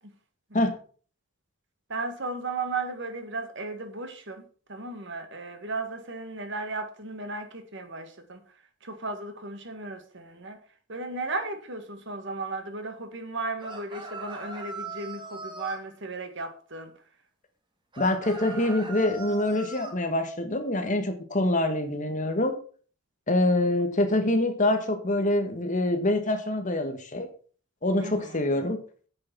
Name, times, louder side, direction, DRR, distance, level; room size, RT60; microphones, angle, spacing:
voice 1, 1.9-4.4 4.7-8.4 8.8-10.6 10.9-16.9 28.0-28.4, right 3 dB, 60° right, 1.8 m, -35 dB
sound 1, 13.6-15.8 17.9-20.0, right 3 dB, 25° right, 1.9 m, -39 dB
voice 2, 18.0-22.6 23.3-27.3 27.8-28.8, left 1 dB, 35° left, 1.5 m, -25 dB
8.6 x 6.6 x 6.1 m
head